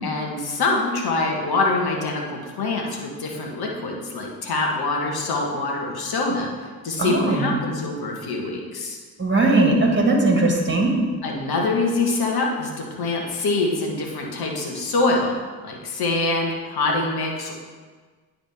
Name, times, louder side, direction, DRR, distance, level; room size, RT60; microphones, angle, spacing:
voice 1, 0.0-9.0 11.2-17.5, left 3 dB, 60° left, 0 dB, 1.6 m, -25 dB
voice 2, 7.0-7.4 9.2-10.9, right 2 dB, 25° right, 0 dB, 2.0 m, -19 dB
10.5 x 3.9 x 3.6 m, 1.4 s
hypercardioid pair, 55°, 42 cm